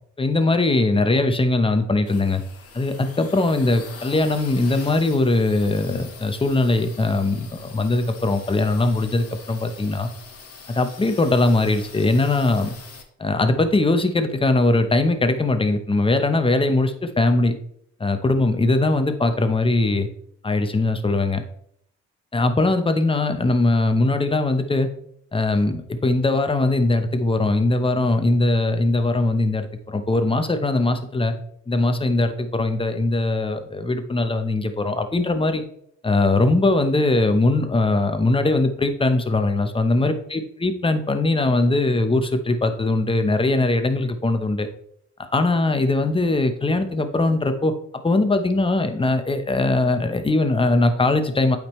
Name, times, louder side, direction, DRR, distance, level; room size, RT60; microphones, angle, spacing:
voice 1, 0.2-2.4 2.7-10.1 10.7-12.7 13.2-17.5 18.0-20.1 20.4-21.4 22.3-24.9 25.3-31.3 31.7-35.6 36.0-44.7 45.2-47.7 48.0-51.6, left 2 dB, 15° left, 8 dB, 0.9 m, -21 dB
sound 1, 2.0-13.0, left 5 dB, 50° left, 1.3 m, -43 dB
8.5 x 5.2 x 3.1 m, 0.68 s
cardioid pair, 90°, 30 cm